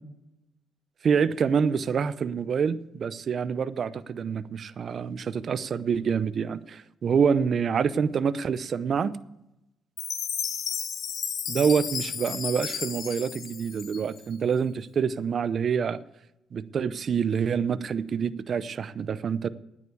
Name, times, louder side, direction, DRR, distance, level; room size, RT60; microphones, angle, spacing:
voice 1, 1.0-9.1 11.5-16.0 16.5-19.5, right 6 dB, 50° right, 0.6 m, -26 dB
Chime, 10.0-14.3, left 7 dB, 65° left, 1.2 m, -33 dB
10.0 x 9.2 x 8.0 m
cardioid pair, 90°, 0 cm